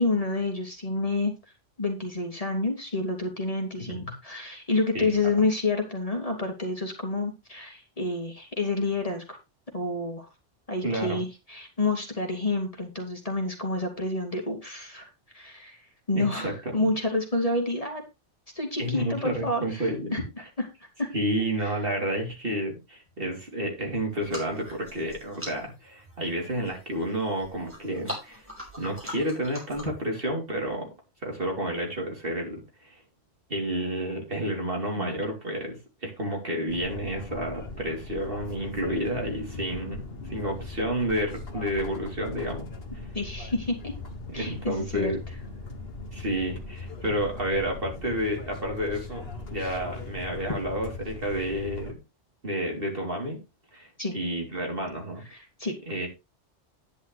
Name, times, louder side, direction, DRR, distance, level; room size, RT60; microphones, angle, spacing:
voice 1, 0.0-1.4 1.8-9.4 9.7-10.3 10.7-15.8 16.1-18.0 18.6-20.7 21.0-21.1 21.6-21.7 35.0-35.1 43.1-43.9 44.3-45.1 54.0-54.1 55.3-55.8, left 2 dB, 30° left, 2 dB, 2.5 m, -29 dB
voice 2, 3.8-4.1 4.9-5.1 10.8-11.2 16.1-16.9 18.8-20.2 21.1-28.5 28.8-30.9 31.2-33.0 33.5-42.7 42.9-43.1 44.3-45.2 46.1-52.0 52.4-53.4 53.7-55.2 55.9-56.1, right 1 dB, 50° right, 1 dB, 3.5 m, -30 dB
sound 1, 24.1-30.1, left 1 dB, 10° right, 5.5 m, -42 dB
sound 2, 36.7-51.9, left 3 dB, 60° left, 1.8 m, -39 dB
10.5 x 10.0 x 3.3 m, 0.24 s
omnidirectional pair, 1.2 m